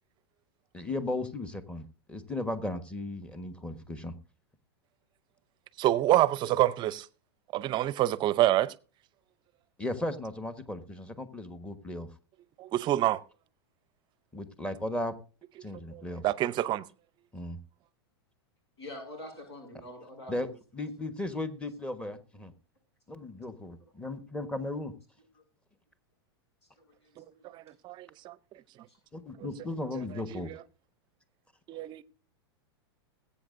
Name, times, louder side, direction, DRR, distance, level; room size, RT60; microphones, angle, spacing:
voice 1, 0.7-4.2 9.8-12.1 14.3-15.1 15.6-16.2 17.3-17.6 20.3-20.5 20.7-22.5 23.1-24.9 29.1-30.5, left 2 dB, 10° left, 1.3 m, -36 dB
voice 2, 5.8-7.1 7.5-8.7 12.6-13.2 15.9-16.8 27.2-27.3 27.5-28.4 30.3-30.6 31.7-32.0, right 14 dB, 35° right, 0.6 m, -27 dB
voice 3, 18.8-20.5 27.0-27.5 28.9-29.0, left 1 dB, 85° left, 7.5 m, -45 dB
21.0 x 8.4 x 2.6 m
hypercardioid pair, 115°, 14 cm